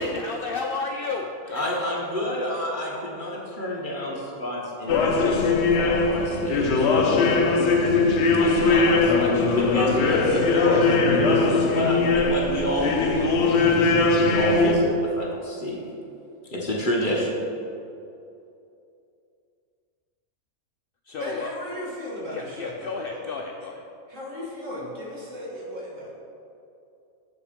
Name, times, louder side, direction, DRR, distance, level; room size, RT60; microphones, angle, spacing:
voice 1, 0.0-1.8 21.1-21.5 22.3-23.8, left 4 dB, 80° left, 2 dB, 0.5 m, -32 dB
voice 2, 1.5-6.9 8.4-15.9 16.5-17.4, left 1 dB, 35° left, -3 dB, 1.2 m, -29 dB
sound 1, 4.9-14.7, left 3 dB, 55° left, 0.8 m, -20 dB
voice 3, 21.2-23.2 24.1-26.1, equal, 60° right, -4 dB, 2.0 m, -36 dB
7.3 x 6.1 x 5.1 m, 2.6 s
omnidirectional pair, 1.5 m